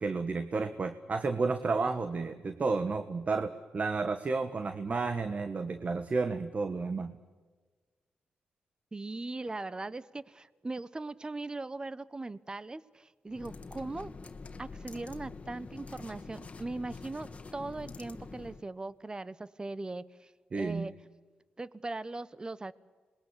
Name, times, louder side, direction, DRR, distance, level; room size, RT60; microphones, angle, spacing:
voice 1, 0.0-7.2 20.5-20.9, right 4 dB, 45° right, 10 dB, 1.5 m, -31 dB
voice 2, 8.9-14.1 14.6-20.3 20.6-20.9 21.6-22.7, right 2 dB, 25° right, 17 dB, 1.1 m, -39 dB
sound 1, 13.3-18.6, left 4 dB, 40° left, 2.1 m, -46 dB
26.5 x 21.5 x 8.3 m, 1.4 s
cardioid pair, 70°, 3 cm